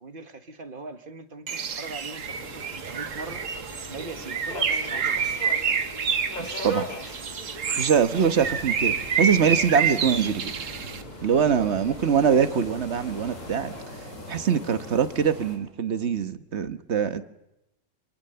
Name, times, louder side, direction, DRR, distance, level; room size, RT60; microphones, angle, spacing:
voice 1, 0.0-3.4 3.8-5.3 8.1-8.4 11.3-11.7 14.3-14.5, right 3 dB, 45° right, 9 dB, 1.8 m, -41 dB
Bird, 1.5-11.0, right 6 dB, 90° right, 1.7 m, -28 dB
Subway metro underground, 2.2-13.8, left 1 dB, 35° left, 3.1 m, -40 dB
voice 2, 6.4-6.9 7.8-10.5 11.2-13.7 14.3-17.3, right 7 dB, 60° right, 11 dB, 1.5 m, -23 dB
sound 1, 8.1-15.6, left 1 dB, 80° left, 4.6 m, -43 dB
27.0 x 23.5 x 6.9 m, 0.91 s
omnidirectional pair, 1.3 m